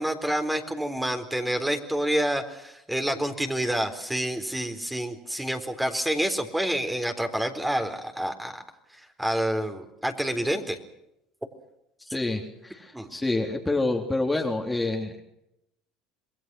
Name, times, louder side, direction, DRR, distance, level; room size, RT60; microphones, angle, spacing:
voice 1, 0.0-8.6 8.9-10.8 12.9-13.1, right 1 dB, 5° right, 6 dB, 3.9 m, -28 dB
voice 2, 12.1-15.2, left 2 dB, 10° left, 2 dB, 3.4 m, -27 dB
27.5 x 21.0 x 6.3 m, 0.83 s
supercardioid pair, 85°, 0 cm